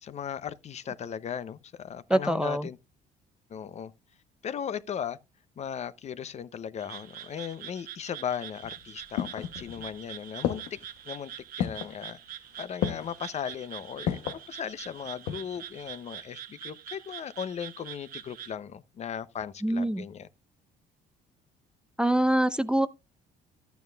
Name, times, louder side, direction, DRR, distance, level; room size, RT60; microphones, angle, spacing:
voice 1, 0.0-2.8 3.5-3.9 4.4-5.2 5.6-10.8 11.0-11.3 11.6-20.3, left 8 dB, 40° left, 0.6 m, -37 dB
voice 2, 2.1-2.7 19.6-20.0 22.0-22.9, right 1 dB, 5° right, 0.5 m, -24 dB
Frog, 6.8-18.5, right 10 dB, 55° right, 0.9 m, -44 dB
sound 1, 8.6-10.0 10.4-11.0 11.6-12.0 12.8-13.3 14.1-14.5 15.0-15.6 15.9-16.0, left 9 dB, 85° left, 0.9 m, -32 dB
12.0 x 9.2 x 2.3 m
cardioid pair, 110°, 17 cm